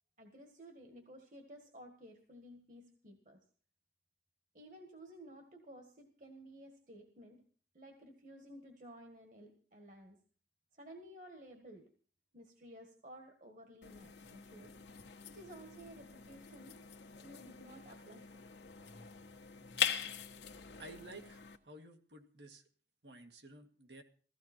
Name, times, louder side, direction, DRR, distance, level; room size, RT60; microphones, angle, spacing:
voice 1, 0.2-3.4 4.5-7.4 7.7-10.2 10.7-11.9 12.3-14.7 15.3-16.8 17.2-18.4, right 1 dB, 45° right, 3 dB, 1.7 m, -54 dB
sound 1, 13.8-21.6, left 9 dB, 85° left, 1.4 m, -43 dB
voice 2, 20.8-22.6 23.0-24.0, right 2 dB, 80° right, 5 dB, 2.1 m, -53 dB
16.0 x 15.5 x 4.4 m, 0.43 s
head